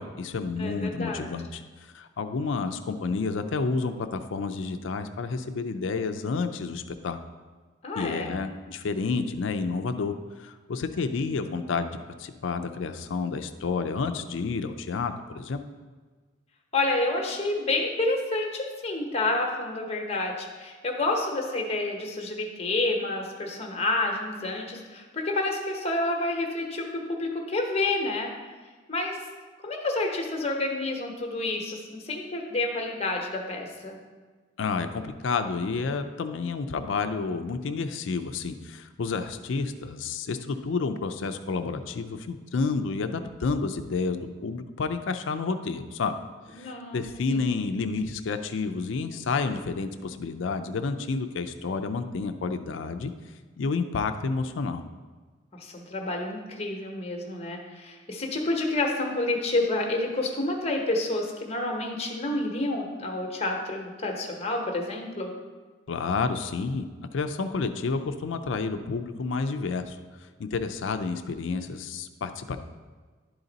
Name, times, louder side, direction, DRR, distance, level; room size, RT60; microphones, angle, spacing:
voice 1, 0.0-7.2 8.0-15.6 34.6-46.1 46.5-53.1 53.6-54.8 65.9-66.9 67.1-70.0 70.4-72.6, left 4 dB, 70° left, 8 dB, 0.4 m, -30 dB
voice 2, 0.6-1.3 7.8-8.3 16.7-28.3 28.9-29.2 29.6-34.0 46.5-47.0 47.3-47.5 55.5-65.3, left 2 dB, 30° left, 1 dB, 1.0 m, -29 dB
11.5 x 3.9 x 4.0 m, 1.4 s
head